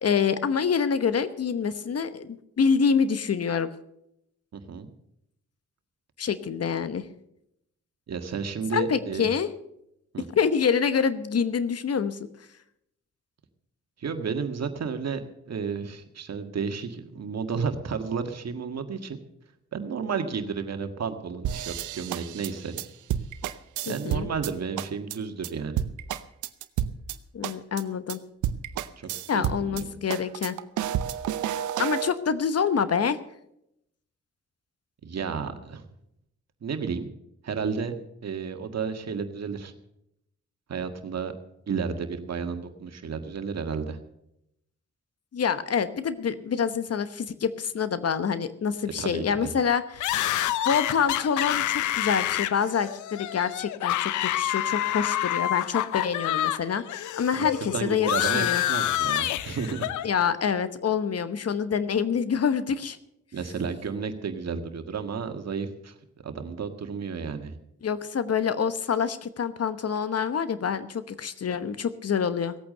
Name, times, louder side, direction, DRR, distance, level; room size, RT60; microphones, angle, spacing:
voice 1, 0.0-3.7 6.2-7.1 8.7-9.5 10.4-12.2 23.9-24.3 27.3-28.2 29.3-30.6 31.8-33.2 45.3-50.3 50.6-58.6 60.0-63.0 67.8-72.6, left 6 dB, 55° left, 13 dB, 1.1 m, -26 dB
voice 2, 4.5-4.9 8.1-9.3 10.1-10.3 14.0-19.2 19.7-22.8 23.9-25.8 29.0-30.0 35.0-35.9 36.6-37.1 37.4-37.9 38.2-39.7 40.7-41.3 41.7-44.0 49.0-49.5 57.4-60.0 63.3-65.9 66.2-67.5, right 5 dB, 60° right, 7 dB, 1.8 m, -32 dB
sound 1, 21.4-24.5 24.8-25.2 25.4-25.5 25.8-27.2 27.4-27.8 28.1-28.2 28.4-29.8 30.1-32.1, right 10 dB, 85° right, 0.7 m, -30 dB
sound 2, 50.0-56.6 56.9-60.1, left 13 dB, 85° left, 0.6 m, -27 dB
17.5 x 8.7 x 6.7 m, 0.79 s
supercardioid pair, 50°, 29 cm